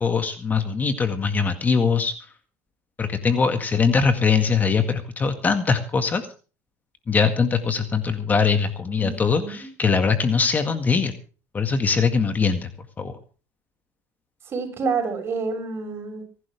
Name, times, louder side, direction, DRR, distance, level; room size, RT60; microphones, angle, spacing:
voice 1, 0.0-2.3 3.0-6.2 7.1-11.1 11.5-12.7 13.0-13.2, left 5 dB, 25° left, 8 dB, 1.9 m, -22 dB
voice 2, 9.0-9.7 14.4-16.2, right 4 dB, 40° right, 4 dB, 6.9 m, -28 dB
25.0 x 11.5 x 3.5 m, 0.36 s
cardioid pair, 115°, 7 cm